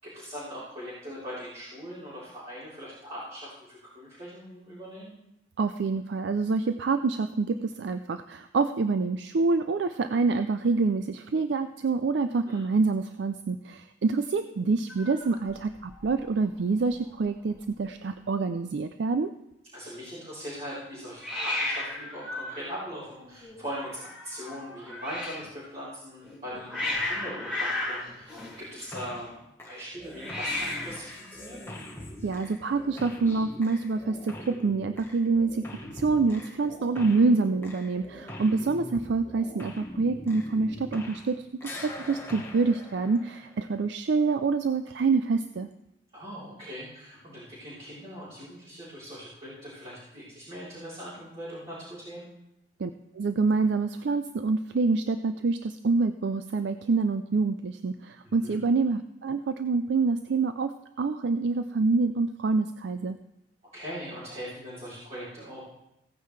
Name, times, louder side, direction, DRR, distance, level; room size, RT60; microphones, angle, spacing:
voice 1, 0.0-5.1 12.4-12.6 19.7-29.3 29.7-31.6 46.1-52.3 58.2-58.6 63.7-65.6, equal, 35° right, -11 dB, 3.8 m, -40 dB
voice 2, 5.6-19.3 32.2-45.7 52.8-63.2, right 4 dB, 70° right, 9 dB, 0.4 m, -26 dB
Hiss, 14.9-16.2 16.5-16.9 17.2-17.3 17.5-18.2 21.2-25.5 26.2-29.2 30.1-31.1, left 2 dB, 5° right, 2.7 m, -35 dB
sound 1, 28.9-29.3 29.6-41.3 41.6-43.8, left 1 dB, 15° left, 1.2 m, -43 dB
16.5 x 9.2 x 3.3 m, 0.85 s
head